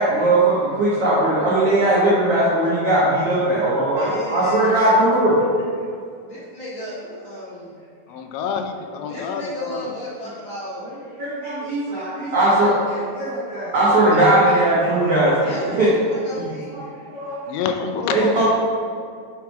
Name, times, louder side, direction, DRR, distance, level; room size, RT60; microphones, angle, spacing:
voice 1, 0.0-5.4 10.8-12.7 13.2-15.9 16.7-16.8 17.1-17.4 18.1-18.4, right 1 dB, 85° right, -9 dB, 1.3 m, -19 dB
voice 2, 3.9-5.1 6.2-7.8 9.0-10.8 12.5-13.0 13.8-14.5 15.4-16.8, equal, 45° left, -9 dB, 1.7 m, -34 dB
voice 3, 8.1-9.9 17.5-18.4, left 6 dB, 90° left, 6 dB, 2.9 m, -27 dB
5.9 x 5.9 x 4.7 m, 2.3 s
omnidirectional pair, 5.0 m